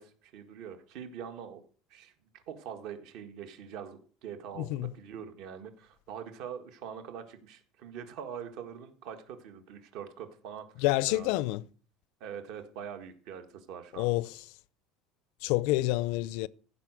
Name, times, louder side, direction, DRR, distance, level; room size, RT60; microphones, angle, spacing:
voice 1, 0.0-1.6 1.9-11.4 12.2-14.1, right 8 dB, 55° right, 1.7 m, -43 dB
voice 2, 4.5-4.9 10.8-11.7 14.0-14.5 15.4-16.5, left 18 dB, 65° left, 0.5 m, -28 dB
15.0 x 5.5 x 6.2 m
cardioid pair, 165°, 0 cm